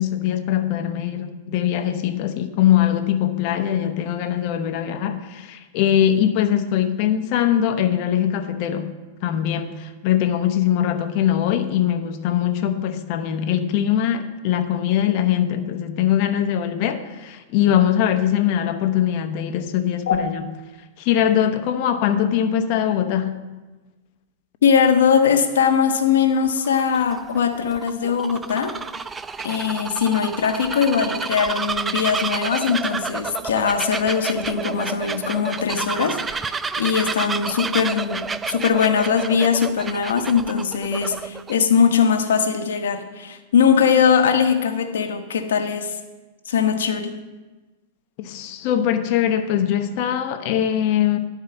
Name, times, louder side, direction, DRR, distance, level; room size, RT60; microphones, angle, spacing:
voice 1, 0.0-9.0 9.2-20.4 21.0-23.4 48.2-51.2, left 10 dB, 50° left, 8 dB, 0.9 m, -21 dB
voice 2, 24.6-28.7 29.4-46.0 46.5-47.1, left 7 dB, 85° left, 6 dB, 1.1 m, -20 dB
Bird vocalization bird call bird song, 26.5-41.5, right 5 dB, 15° right, 0.3 m, -30 dB
11.5 x 4.7 x 6.7 m, 1.2 s
hypercardioid pair, 135°, 0 cm